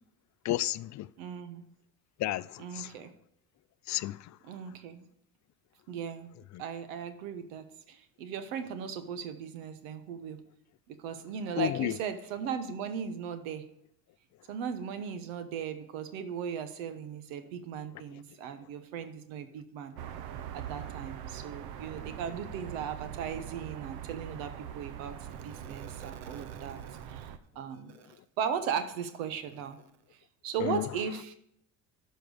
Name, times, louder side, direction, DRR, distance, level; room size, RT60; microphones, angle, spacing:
voice 1, 0.4-1.1 2.2-2.9 3.9-4.4 6.5-6.6 11.6-12.0 30.6-30.9, left 15 dB, 50° left, 0.4 m, -32 dB
voice 2, 1.2-1.6 2.6-3.1 4.4-5.0 5.9-10.4 10.9-13.7 14.5-20.0 20.5-29.8 30.4-31.4, right 7 dB, 90° right, 1.1 m, -37 dB
sound 1, 20.0-27.4, right 10 dB, 75° right, 0.9 m, -42 dB
12.0 x 4.5 x 6.4 m
supercardioid pair, 85°, 39 cm